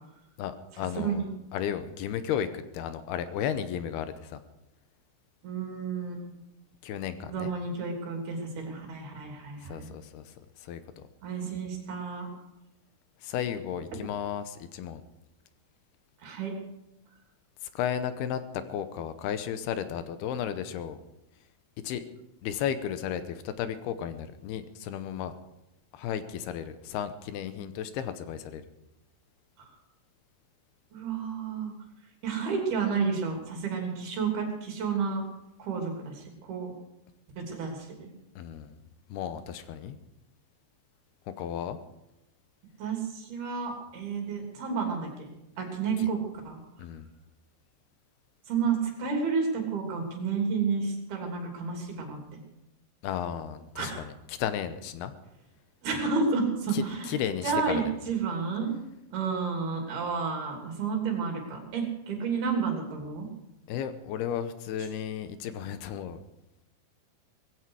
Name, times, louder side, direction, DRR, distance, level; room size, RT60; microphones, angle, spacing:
voice 1, 0.4-1.3 1.5-2.5 2.7-4.4 6.8-7.5 9.7-10.2 10.7-11.0 13.2-15.0 17.8-18.4 18.7-21.0 21.8-22.0 22.4-25.3 25.9-28.6 38.4-38.7 39.1-40.0 41.4-41.8 46.8-47.1 53.0-55.1 56.7-57.8 63.7-66.2, left 9 dB, 80° left, 11 dB, 2.8 m, -34 dB
voice 2, 1.0-1.3 5.4-6.2 7.3-9.9 11.2-12.3 16.2-16.5 30.9-31.7 32.2-35.2 35.6-36.2 36.5-36.7 37.4-38.1 42.8-45.3 45.6-46.2 46.4-46.6 48.5-52.2 53.8-54.0 55.8-57.2 57.4-58.7 59.1-63.3, right 5 dB, 70° right, 1 dB, 5.1 m, -31 dB
18.5 x 15.5 x 4.8 m, 0.88 s
omnidirectional pair, 4.6 m